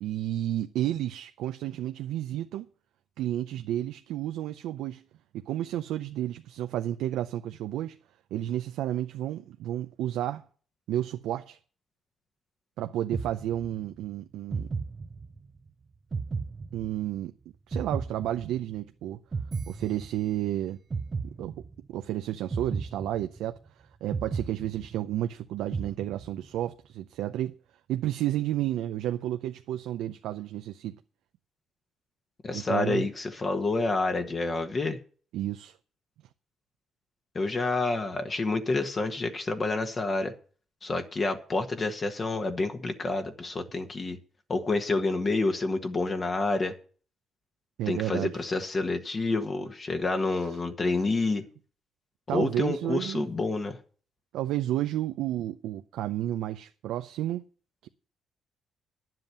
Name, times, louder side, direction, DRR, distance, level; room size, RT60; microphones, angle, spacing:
voice 1, 0.0-2.7 3.2-5.0 5.3-8.0 8.3-10.4 10.9-11.6 12.8-14.7 16.7-17.3 17.7-19.2 19.7-20.8 21.4-21.6 21.9-23.6 24.0-27.5 27.9-30.9 32.5-33.1 35.3-35.8 47.8-48.3 50.3-50.4 50.8-51.0 52.3-53.3 54.3-57.4 57.8-57.9, right 13 dB, 90° right, 0.6 m, -31 dB
sound 1, 13.1-14.0 14.5-15.6 16.1-17.3 17.7-18.9 19.3-20.5 20.9-22.0 22.5-23.7 24.1-25.3 25.7-26.6, right 4 dB, 35° right, 0.7 m, -35 dB
voice 2, 32.4-35.0 37.3-40.3 40.8-44.2 44.5-46.7 47.9-51.5 52.3-53.8, left 3 dB, 35° left, 1.4 m, -28 dB
11.0 x 7.7 x 6.9 m
cardioid pair, 90°, 0 cm